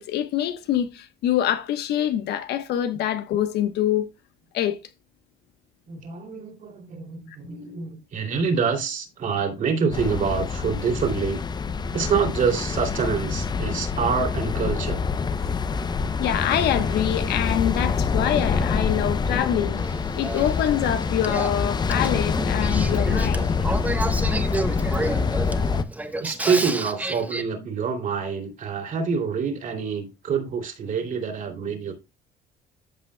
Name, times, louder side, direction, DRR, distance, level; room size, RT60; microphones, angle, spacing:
voice 1, 0.0-4.1 4.5-4.8 15.4-15.5 16.2-19.8 20.2-23.5, left 11 dB, 75° left, 1.1 m, -25 dB
voice 2, 5.9-11.4 11.9-15.0 26.2-31.9, right 6 dB, 50° right, 2.8 m, -26 dB
sound 1, 9.9-25.8, left 5 dB, 25° left, 0.5 m, -26 dB
Male speech man speaking / Female speech woman speaking / Conversation, 19.8-27.4, right 2 dB, 10° right, 1.0 m, -31 dB
13.5 x 5.5 x 2.2 m
cardioid pair, 110°, 17 cm